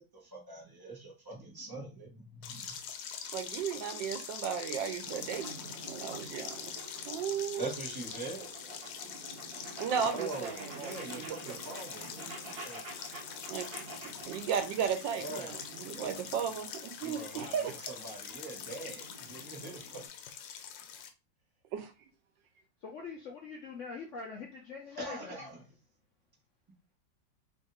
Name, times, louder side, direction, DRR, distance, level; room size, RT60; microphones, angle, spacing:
voice 1, 0.0-2.8 7.6-8.7 10.1-12.8 15.2-15.5 17.0-20.0 25.0-25.7, right 2 dB, 15° right, 0.9 m, -43 dB
sound 1, 2.4-21.1, left 8 dB, 90° left, 1.3 m, -44 dB
voice 2, 3.3-5.6 5.9-6.7 7.0-7.7 9.8-11.4 13.5-13.7 14.3-17.7 21.7-21.9, right 7 dB, 80° right, 1.4 m, -35 dB
sound 2, 5.0-20.1, right 2 dB, 65° right, 1.3 m, -48 dB
voice 3, 22.8-25.4, left 4 dB, 60° left, 0.8 m, -43 dB
3.4 x 2.6 x 3.9 m
omnidirectional pair, 2.0 m